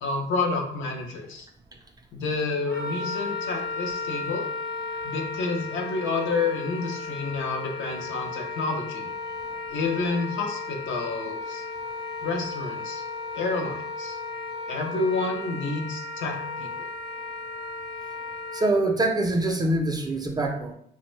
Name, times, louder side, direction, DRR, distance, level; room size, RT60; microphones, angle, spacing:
voice 1, 0.0-1.5 2.1-4.5 5.0-9.1 9.7-11.6 12.2-13.0 13.3-14.2 14.7-16.9, left 3 dB, 75° left, 2 dB, 0.6 m, -29 dB
Wind instrument woodwind instrument, 2.7-18.7, left 3 dB, 50° left, 0.9 m, -35 dB
voice 2, 18.5-20.7, right 2 dB, 20° right, 2 dB, 0.4 m, -24 dB
2.5 x 2.1 x 3.1 m, 0.68 s
cardioid pair, 90°, 20 cm